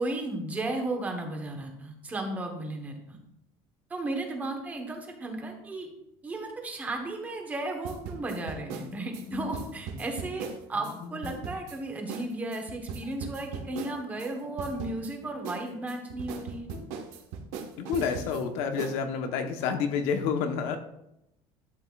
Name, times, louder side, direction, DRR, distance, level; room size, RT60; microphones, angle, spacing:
voice 1, 0.0-3.2 3.9-5.9 6.2-16.7, right 2 dB, 15° right, 3 dB, 1.2 m, -34 dB
sound 1, 7.8-11.0 11.2-11.8 12.1-12.3 12.5-14.3 14.6-15.1 15.4-18.4 18.8-19.0, right 6 dB, 80° right, 1.3 m, -39 dB
Bowed string instrument, 8.7-11.7 12.1-12.3 12.7-12.8 13.0-14.9 15.2-16.0 16.7-17.3, left 6 dB, 55° left, 1.7 m, -46 dB
voice 2, 17.8-20.8, left 6 dB, 75° left, 6 dB, 1.1 m, -29 dB
11.5 x 8.0 x 2.4 m, 0.81 s
cardioid pair, 180°, 11 cm